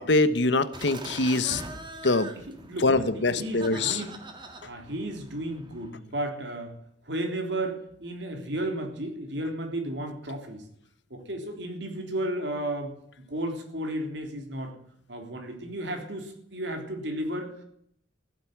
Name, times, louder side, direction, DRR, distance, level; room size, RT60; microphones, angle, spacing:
voice 1, 0.0-1.6 2.0-2.3 2.8-4.0, left 2 dB, 70° left, 13 dB, 1.1 m, -24 dB
timber-chuckling, 0.7-5.9, right 2 dB, 25° right, 1.9 m, -42 dB
voice 2, 2.3-4.2 4.7-6.7 7.0-10.6 11.1-14.8 15.1-17.6, right 1 dB, 70° right, 4 dB, 3.4 m, -33 dB
15.5 x 8.1 x 9.5 m, 0.69 s
head